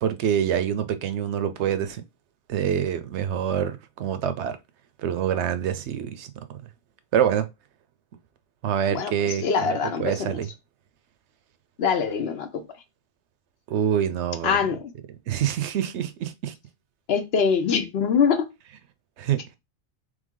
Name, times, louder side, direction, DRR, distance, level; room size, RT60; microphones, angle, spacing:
voice 1, 0.0-2.0 2.5-4.6 5.0-6.3 7.1-7.5 8.6-10.5 13.7-14.6 15.3-16.5 19.2-19.4, right 9 dB, 75° right, 0.8 m, -26 dB
voice 2, 8.9-10.4 11.8-12.6 14.4-14.9 17.1-18.5, left 6 dB, 65° left, 0.9 m, -24 dB
3.5 x 3.2 x 3.7 m
omnidirectional pair, 1.2 m